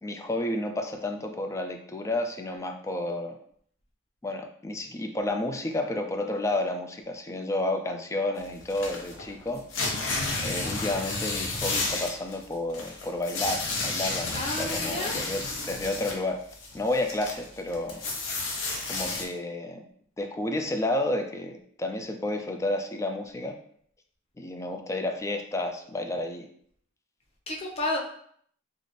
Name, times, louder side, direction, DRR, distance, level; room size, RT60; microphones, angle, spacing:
voice 1, 0.0-3.4 4.2-9.6 10.4-16.4 16.7-18.0 18.9-19.8 20.2-23.6 24.4-26.5, left 1 dB, 15° left, 5 dB, 0.3 m, -31 dB
sound 1, 8.4-16.2 16.5-19.2, left 3 dB, 85° left, 0.7 m, -32 dB
voice 2, 14.3-15.3 27.5-28.0, left 1 dB, 30° left, -2 dB, 0.7 m, -31 dB
4.0 x 2.5 x 3.1 m, 0.64 s
head